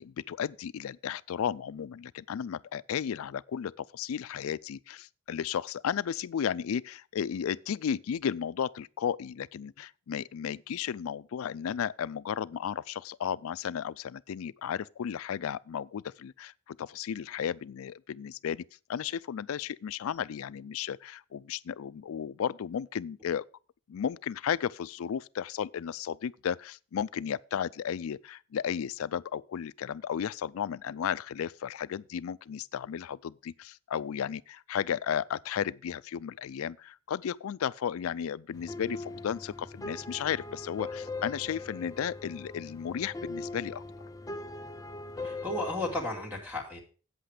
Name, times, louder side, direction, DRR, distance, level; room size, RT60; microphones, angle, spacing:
voice 1, 0.0-18.6 18.9-23.4 23.9-43.8, left 8 dB, 80° left, 0.4 m, -34 dB
sound 1, 38.5-46.1, left 2 dB, 15° left, 0.4 m, -41 dB
voice 2, 45.2-46.8, left 2 dB, 10° right, 2.3 m, -34 dB
8.3 x 8.0 x 4.9 m
head